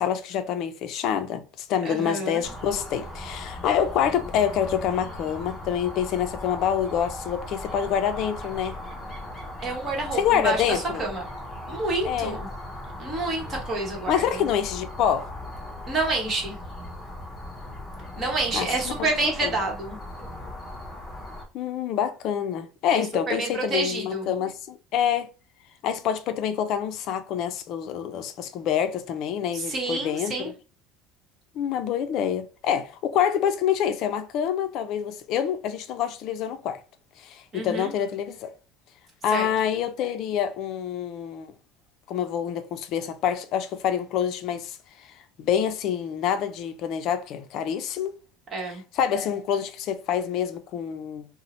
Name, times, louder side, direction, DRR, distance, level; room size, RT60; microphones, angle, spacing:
voice 1, 0.0-8.8 10.1-11.0 12.0-12.4 14.1-15.3 18.5-19.1 19.4-19.5 21.5-25.3 25.8-30.5 31.6-36.8 37.2-38.5 39.2-41.5 42.1-44.8 45.4-48.1 48.7-51.3, left 9 dB, 45° left, 0.4 m, -26 dB
voice 2, 1.8-2.5 9.6-11.2 11.7-12.5 13.0-14.4 15.9-16.5 18.2-20.0 22.9-24.3 29.5-30.5 37.5-37.9 39.3-39.5 48.5-48.8, right 3 dB, 25° right, 1.1 m, -28 dB
sound 1, 2.4-21.5, left 1 dB, 10° left, 0.8 m, -38 dB
2.7 x 2.0 x 4.0 m
cardioid pair, 165°, 0 cm